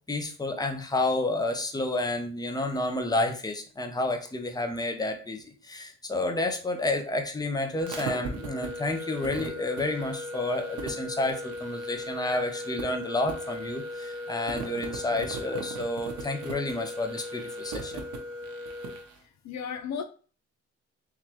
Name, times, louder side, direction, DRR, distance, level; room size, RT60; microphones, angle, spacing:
voice 1, 0.1-18.0, left 2 dB, 15° left, 0.7 m, -30 dB
sound 1, 7.8-19.1, equal, 75° right, 0.9 m, -37 dB
voice 2, 19.2-20.0, left 7 dB, 65° left, 0.4 m, -35 dB
3.9 x 3.1 x 2.9 m
cardioid pair, 90°, 30 cm